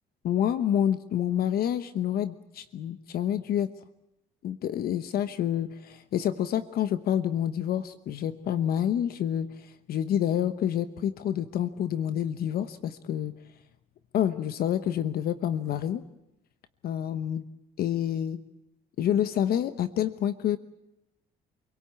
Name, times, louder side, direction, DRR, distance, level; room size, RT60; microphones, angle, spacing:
voice 1, 0.2-3.7 4.4-13.3 14.1-16.0 16.8-17.5 17.8-18.4 19.0-20.6, left 10 dB, 65° left, 12 dB, 1.0 m, -28 dB
28.0 x 17.5 x 8.5 m, 0.89 s
cardioid pair, 110°, 17 cm